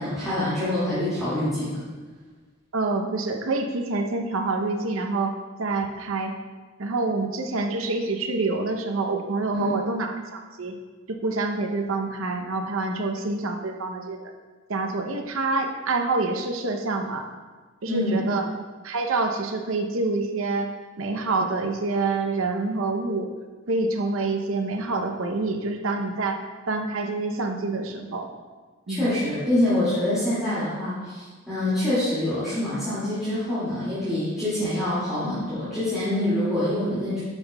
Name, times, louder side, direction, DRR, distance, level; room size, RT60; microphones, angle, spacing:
voice 1, 0.0-1.8 9.5-9.7 17.9-18.2 28.9-37.2, left 1 dB, ahead, -15 dB, 2.1 m, -25 dB
voice 2, 2.7-5.3 5.6-6.3 6.8-10.7 11.1-14.2 14.7-17.3 17.8-18.5 18.8-20.7 21.0-23.3 23.7-26.4 26.7-28.3 28.9-29.1, right 3 dB, 85° right, 4 dB, 0.7 m, -27 dB
9.7 x 5.9 x 2.2 m, 1.4 s
head